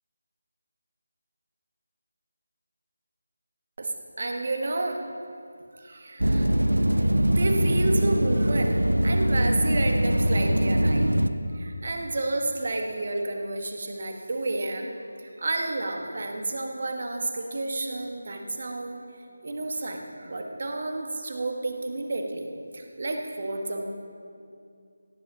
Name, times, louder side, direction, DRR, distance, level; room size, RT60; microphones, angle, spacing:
voice 1, 3.8-5.0 5.8-6.5 7.4-8.8 9.0-11.1 11.5-14.9 15.2-19.0 19.4-22.5 22.7-23.8, right 2 dB, 45° right, 3 dB, 1.5 m, -30 dB
sound 1, 6.2-11.3, right 1 dB, 85° right, 0.7 m, -22 dB
17.0 x 10.0 x 5.6 m, 2.4 s
figure-of-eight pair, 160°, 0 cm